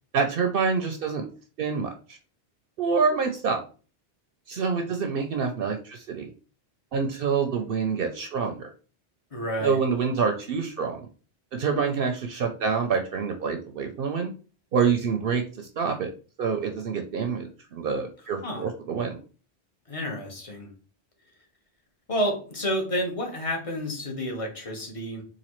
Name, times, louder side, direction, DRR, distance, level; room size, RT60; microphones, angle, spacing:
voice 1, 0.1-1.3 1.6-2.2 2.8-3.6 4.5-6.3 6.9-8.7 9.6-11.0 11.5-14.3 14.7-16.1 16.4-19.2, right 5 dB, 65° right, 5 dB, 0.7 m, -26 dB
voice 2, 9.3-9.8 18.4-18.7 19.9-20.7 22.1-25.2, equal, 35° left, 2 dB, 0.9 m, -30 dB
4.0 x 2.6 x 3.0 m, 0.37 s
omnidirectional pair, 1.1 m